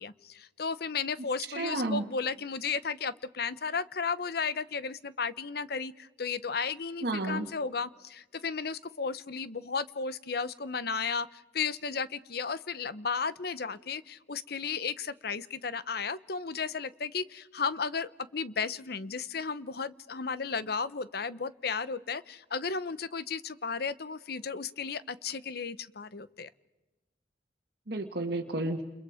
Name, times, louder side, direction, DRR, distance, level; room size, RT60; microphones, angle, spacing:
voice 1, 0.0-26.5, left 5 dB, 60° left, 16 dB, 0.8 m, -34 dB
voice 2, 1.5-2.0 7.0-7.5 27.9-28.8, right 2 dB, 60° right, 2 dB, 1.7 m, -31 dB
29.0 x 29.0 x 5.0 m, 1.1 s
head